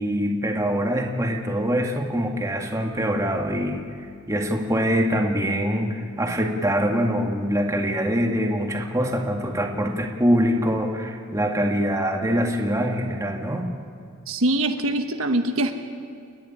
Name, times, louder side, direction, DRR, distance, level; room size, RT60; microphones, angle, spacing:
voice 1, 0.0-3.8 4.3-13.7, equal, 15° right, 2 dB, 2.0 m, -24 dB
voice 2, 14.3-15.8, right 1 dB, 80° right, 6 dB, 1.3 m, -23 dB
29.5 x 10.5 x 10.0 m, 2.3 s
head